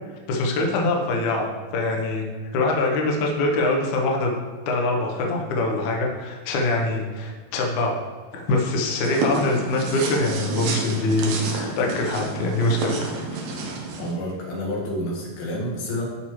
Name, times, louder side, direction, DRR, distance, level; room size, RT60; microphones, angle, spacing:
voice 1, 0.3-2.2 2.5-4.3 4.7-8.0 8.3-13.1, left 2 dB, 90° left, 0 dB, 1.6 m, -24 dB
sound 1, 9.0-14.1, right 3 dB, 70° right, 2.2 m, -29 dB
voice 2, 14.0-16.0, left 1 dB, 65° left, -4 dB, 3.3 m, -29 dB
12.5 x 4.4 x 3.1 m, 1.5 s
omnidirectional pair, 5.1 m